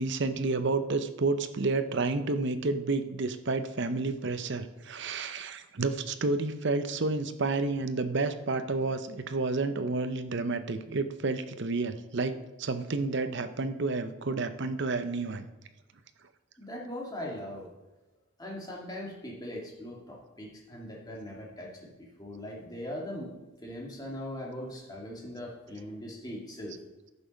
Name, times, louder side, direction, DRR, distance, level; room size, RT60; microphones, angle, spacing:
voice 1, 0.0-15.5, right 3 dB, 55° right, 10 dB, 0.7 m, -30 dB
voice 2, 16.6-17.7 18.4-23.3 23.6-26.8, left 1 dB, 20° left, -1 dB, 1.9 m, -40 dB
11.0 x 7.1 x 5.2 m, 1.1 s
head